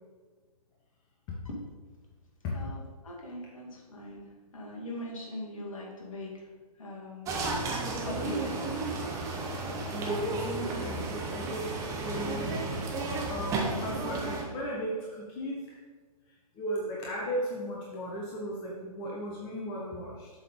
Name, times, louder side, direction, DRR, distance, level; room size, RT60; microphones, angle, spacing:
voice 1, 2.5-6.5 6.8-7.3 8.0-9.0, left 1 dB, 55° left, -2 dB, 2.1 m, -41 dB
sound 1, 7.2-14.4, right 3 dB, 15° right, 0.9 m, -33 dB
voice 2, 9.6-12.7 13.3-15.7 16.5-20.3, equal, 20° left, -4 dB, 1.2 m, -36 dB
7.7 x 4.1 x 5.2 m, 1.4 s
figure-of-eight pair, 130°, 20 cm